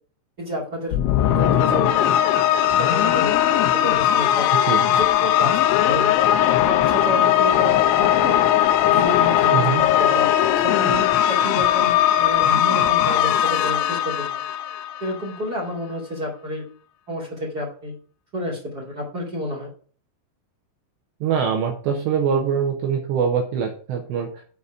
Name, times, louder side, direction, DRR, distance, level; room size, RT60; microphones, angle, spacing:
voice 1, 0.4-1.0 1.3-1.9 2.8-4.5 4.9-6.2 6.4-8.4 8.9-10.3 10.6-14.4 15.0-16.7 17.1-17.9 18.3-19.7, left 1 dB, 40° right, -2 dB, 1.4 m, -30 dB
sound 1, 0.9-15.3, left 11 dB, 80° left, 2.8 m, -19 dB
voice 2, 4.6-4.9 9.5-9.8 21.2-24.4, right 7 dB, 75° right, 2 dB, 2.9 m, -23 dB
8.2 x 4.1 x 7.0 m, 0.43 s
omnidirectional pair, 5.8 m